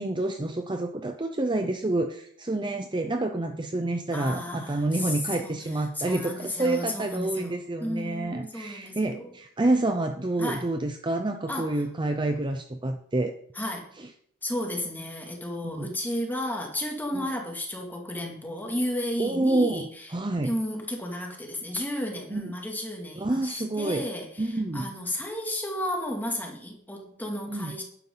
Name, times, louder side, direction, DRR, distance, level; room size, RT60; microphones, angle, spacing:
voice 1, 0.0-13.3 14.0-14.1 15.6-15.9 17.1-17.3 19.2-19.8 20.1-20.6 22.3-22.5 23.2-24.0 24.4-24.9 27.5-27.8, right 2 dB, 20° right, 6 dB, 0.6 m, -28 dB
voice 2, 4.1-9.3 10.4-10.7 11.5-11.7 13.5-13.9 14.4-20.1 20.4-27.8, left 1 dB, 10° left, 0 dB, 2.5 m, -33 dB
11.5 x 11.5 x 4.0 m, 0.65 s
head